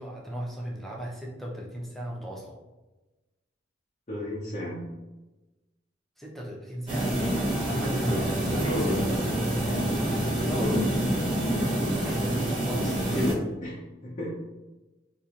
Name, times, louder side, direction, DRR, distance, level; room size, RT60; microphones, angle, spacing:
voice 1, 0.0-2.6 6.2-7.2 7.7-10.0 10.4-10.8 12.6-13.0, right 1 dB, ahead, -3 dB, 0.6 m, -37 dB
voice 2, 4.1-4.8 8.1-8.2 8.5-9.0 10.4-10.9 13.1-14.3, left 1 dB, 35° left, -7 dB, 0.7 m, -32 dB
sound 1, 6.9-13.3, right 1 dB, 25° right, 0.9 m, -27 dB
4.3 x 2.6 x 2.5 m, 1.1 s
head